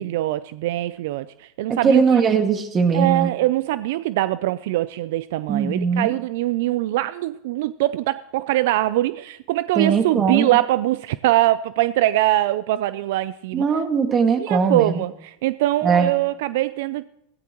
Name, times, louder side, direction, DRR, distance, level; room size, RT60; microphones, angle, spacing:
voice 1, 0.0-2.3 2.9-13.6 14.4-17.1, right 15 dB, 70° right, 0.4 m, -23 dB
voice 2, 1.7-3.3 5.5-6.1 9.7-10.6 13.5-15.0 15.8-16.1, right 6 dB, 30° right, 1.9 m, -20 dB
16.0 x 16.0 x 3.0 m
supercardioid pair, 115°, 0 cm